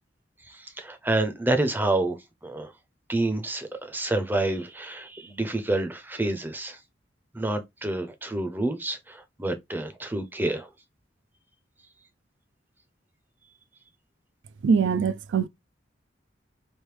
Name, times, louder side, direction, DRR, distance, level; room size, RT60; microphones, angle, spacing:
voice 1, 0.5-2.2 2.4-2.7 3.1-6.8 7.3-10.7, right 2 dB, 10° right, 0.5 m, -28 dB
voice 2, 14.6-15.5, right 5 dB, 75° right, 0.3 m, -22 dB
3.3 x 2.6 x 3.1 m
head